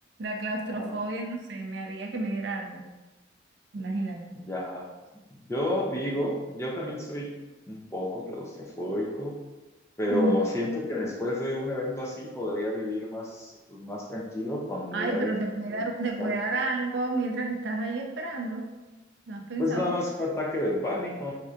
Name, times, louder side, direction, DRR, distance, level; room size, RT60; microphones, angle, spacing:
voice 1, 0.2-2.8 3.7-4.2 10.1-10.5 14.9-18.7 19.3-20.0, right 2 dB, 65° right, 2 dB, 0.5 m, -30 dB
voice 2, 4.3-4.9 5.5-7.3 7.7-9.4 10.0-15.3 15.6-15.8 16.2-16.4 19.6-21.3, left 1 dB, 15° left, -3 dB, 0.4 m, -31 dB
4.3 x 2.6 x 2.4 m, 1.1 s
head